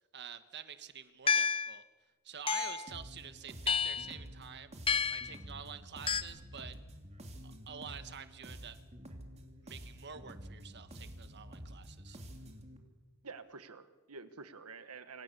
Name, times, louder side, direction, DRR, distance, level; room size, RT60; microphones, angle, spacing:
voice 1, 0.1-1.8 2.2-4.7 5.1-6.7 7.4-8.8 9.6-12.2, right 7 dB, 50° right, 10 dB, 1.5 m, -48 dB
sound 1, 1.3-1.8 2.5-2.9 3.7-4.1 4.9-5.3 6.1-6.2, left 6 dB, 25° left, 0.8 m, -30 dB
sound 2, 2.9-12.8, equal, 30° right, 3.1 m, -49 dB
voice 2, 13.2-15.2, right 4 dB, 85° right, 11 dB, 1.6 m, -49 dB
27.0 x 26.5 x 6.9 m, 1.3 s
head